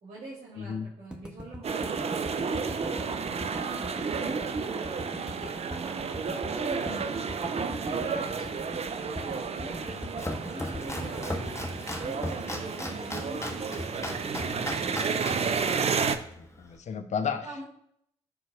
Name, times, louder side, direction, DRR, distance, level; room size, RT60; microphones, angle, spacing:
voice 1, 0.0-1.9 2.3-3.2 3.5-6.0 6.3-7.3 7.6-8.7 8.9-11.4 11.8-15.1 17.4-17.6, right 1 dB, 65° right, -7 dB, 2.4 m, -44 dB
voice 2, 0.6-0.9 6.9-7.0 11.3-11.4 16.4-17.5, left 6 dB, 55° left, 9 dB, 0.8 m, -33 dB
sound 1, 1.1-13.3, left 1 dB, 5° right, 1.2 m, -42 dB
sound 2, 1.6-16.2, right 5 dB, 45° right, 0.6 m, -32 dB
Domestic sounds home sounds, 9.8-16.8, left 1 dB, 20° left, 1.5 m, -38 dB
14.0 x 4.7 x 2.4 m, 0.71 s
hypercardioid pair, 40°, 15 cm